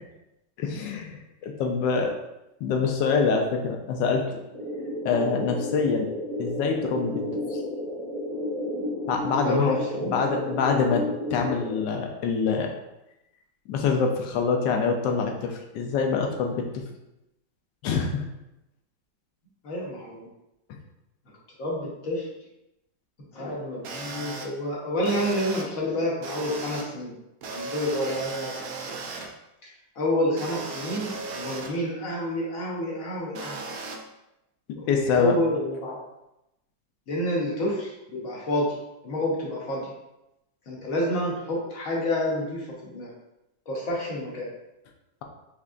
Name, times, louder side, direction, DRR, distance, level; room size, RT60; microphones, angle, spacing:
voice 1, 0.6-2.1 2.6-4.4 5.0-6.1 6.4-7.2 7.5-7.6 9.1-11.0 11.3-12.7 13.7-16.6 17.8-18.2 34.9-35.4, left 5 dB, 80° left, 3 dB, 1.3 m, -25 dB
sound 1, 4.5-11.8, left 1 dB, 45° right, 0.4 m, -32 dB
voice 2, 9.4-10.2 19.6-20.3 21.6-22.3 23.3-27.1 27.4-29.0 29.6-29.7 30.0-33.6 34.7-36.0 37.1-38.8 39.0-39.9 40.7-43.1 43.7-44.5, left 1 dB, 55° left, -4 dB, 1.2 m, -29 dB
sound 2, 23.8-24.4 25.0-25.6 26.2-26.8 27.4-29.3 30.4-31.7 33.4-34.0, right 4 dB, 70° right, 1.0 m, -36 dB
5.0 x 3.3 x 2.4 m, 0.90 s
omnidirectional pair, 2.0 m